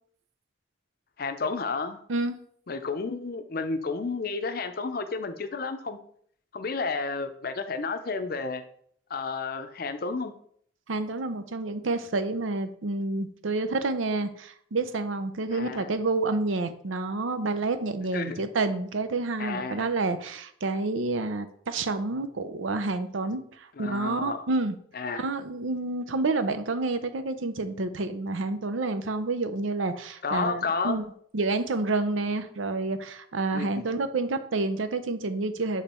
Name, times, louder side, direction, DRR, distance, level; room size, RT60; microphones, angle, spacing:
voice 1, 1.2-2.0 2.7-6.0 6.5-8.6 9.1-10.3 15.5-15.9 18.1-18.4 19.4-19.9 23.8-24.4 24.9-25.2 30.2-31.0 33.5-33.9, left 4 dB, 50° left, 9 dB, 0.5 m, -31 dB
voice 2, 10.9-24.8 25.1-31.0 31.3-35.8, right 3 dB, 90° right, 10 dB, 0.6 m, -29 dB
7.1 x 3.3 x 4.3 m, 0.63 s
head